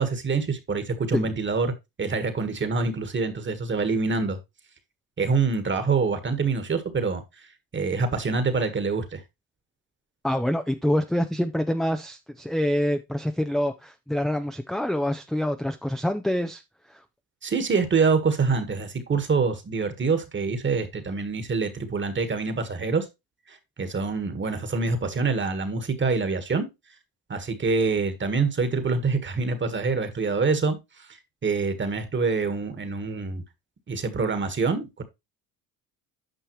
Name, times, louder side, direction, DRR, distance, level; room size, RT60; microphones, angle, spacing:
voice 1, 0.0-1.7 2.0-4.4 5.2-7.2 7.7-9.2 17.4-23.1 23.5-26.7 27.3-30.8 31.4-33.4 33.9-35.0, right 4 dB, 30° right, 1.6 m, -25 dB
voice 2, 10.2-16.6, equal, ahead, 0.5 m, -26 dB
9.1 x 5.6 x 3.1 m
supercardioid pair, 90°, 39 cm